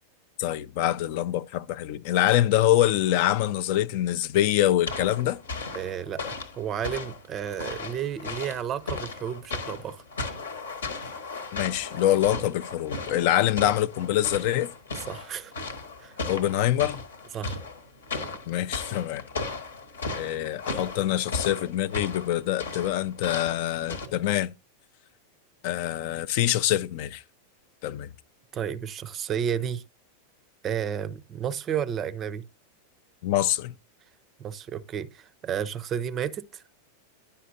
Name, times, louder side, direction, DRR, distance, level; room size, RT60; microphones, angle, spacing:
voice 1, 0.4-5.4 11.5-14.7 16.3-17.0 18.5-19.2 20.2-24.5 25.6-27.2 27.8-28.1 33.2-33.7, left 13 dB, 45° left, 0.4 m, -25 dB
sound 1, 4.9-24.1, left 3 dB, 70° left, 1.1 m, -36 dB
voice 2, 5.7-10.0 15.0-15.5 16.0-16.1 17.3-17.6 18.2-18.3 28.5-29.8 30.6-32.5 34.4-36.6, right 8 dB, 30° right, 0.5 m, -32 dB
10.0 x 5.6 x 2.6 m
figure-of-eight pair, 90°, 0 cm